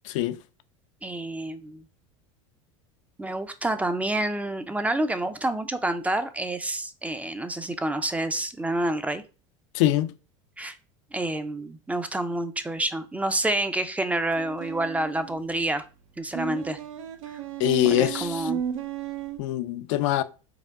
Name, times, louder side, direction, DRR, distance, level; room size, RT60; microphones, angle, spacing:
voice 1, 0.0-0.4 9.7-10.1 17.6-18.5 19.4-20.2, left 13 dB, 70° left, 0.4 m, -23 dB
voice 2, 1.0-1.8 3.2-9.2 10.6-10.8 11.1-15.8 16.2-16.8 17.9-18.6, right 1 dB, 10° right, 0.4 m, -28 dB
sound 1, 14.3-15.4 16.3-19.4, right 9 dB, 90° right, 0.6 m, -34 dB
4.7 x 2.2 x 3.5 m
supercardioid pair, 105°, 16 cm